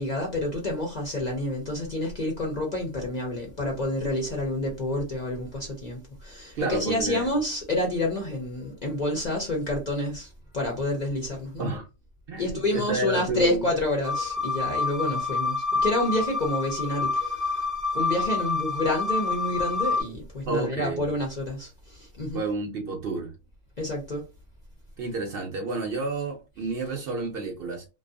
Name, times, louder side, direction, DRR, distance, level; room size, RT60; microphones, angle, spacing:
voice 1, 0.0-10.3 10.5-11.7 12.4-17.7 17.9-22.5 23.8-24.3, left 1 dB, 45° left, 0.6 m, -29 dB
voice 2, 6.6-7.3 11.6-11.9 12.3-13.7 20.5-21.0 22.3-23.3 25.0-27.8, right 3 dB, 60° right, 0.7 m, -30 dB
sound 1, 14.0-20.0, left 4 dB, 5° right, 0.6 m, -28 dB
2.6 x 2.3 x 2.5 m
omnidirectional pair, 1.3 m